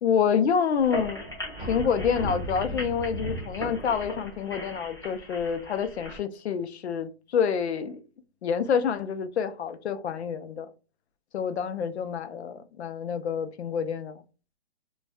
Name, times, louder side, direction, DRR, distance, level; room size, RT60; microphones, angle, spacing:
voice 1, 0.0-1.2 1.6-8.0 8.4-10.7 11.3-14.2, left 7 dB, 90° left, 0.5 m, -27 dB
sound 1, 0.8-6.2, equal, 25° left, 0.4 m, -36 dB
2.3 x 2.2 x 2.6 m
hypercardioid pair, 180°, 32 cm